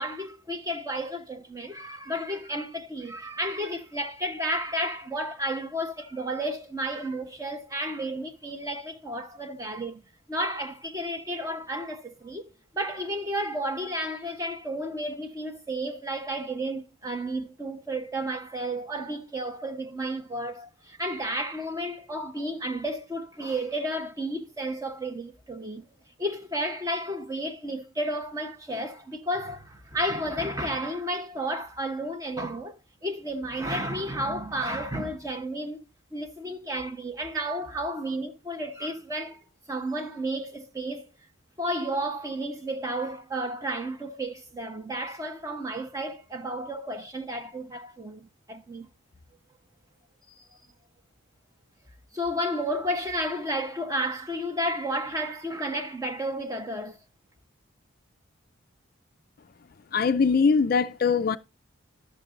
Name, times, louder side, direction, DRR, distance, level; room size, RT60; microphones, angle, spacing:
voice 1, 0.0-10.0 10.3-25.8 26.2-35.8 36.1-39.4 39.7-41.1 41.6-48.9 50.4-50.5 52.1-57.0, right 1 dB, 15° right, 1.1 m, -32 dB
voice 2, 59.9-61.4, left 5 dB, 45° left, 0.4 m, -22 dB
12.0 x 6.7 x 3.8 m
head